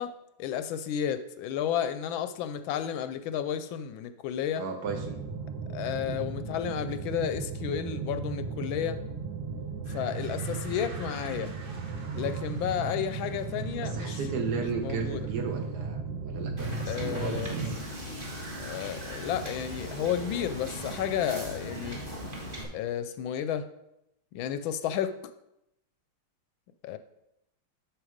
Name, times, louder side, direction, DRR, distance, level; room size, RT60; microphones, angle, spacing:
voice 1, 0.0-4.7 5.7-9.0 9.9-11.5 12.1-14.2 14.8-15.3 16.8-17.8 18.6-22.0 22.7-23.7 24.3-25.3 26.8-27.0, left 9 dB, 75° left, 1.3 m, -32 dB
voice 2, 4.6-5.2 6.1-6.2 13.8-17.8, right 5 dB, 65° right, 1.1 m, -35 dB
sound 1, 4.9-17.8, right 5 dB, 80° right, 1.7 m, -35 dB
sound 2, 9.8-15.9, right 2 dB, 50° right, 0.6 m, -49 dB
Wind / Boat Water vehicle, 16.6-22.6, equal, 25° right, 1.5 m, -38 dB
7.8 x 6.2 x 5.0 m
omnidirectional pair, 2.3 m